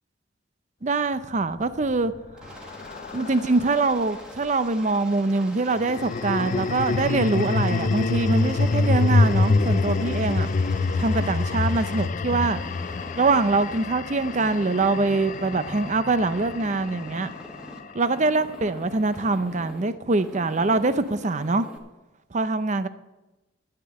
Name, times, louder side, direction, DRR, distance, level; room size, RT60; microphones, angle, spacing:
voice 1, 0.8-2.1 2.6-2.7 3.1-10.5 11.0-12.6 13.2-17.3 17.9-21.7 22.3-22.9, right 3 dB, 40° right, 0.6 m, -24 dB
sound 1, 1.6-4.1 5.7-18.0, left 3 dB, 45° left, 0.4 m, -26 dB
Aircraft, 2.4-13.8 14.2-15.9 16.2-17.8 18.1-19.9 20.2-21.8, equal, 5° right, 1.6 m, -43 dB
11.5 x 6.7 x 8.9 m
head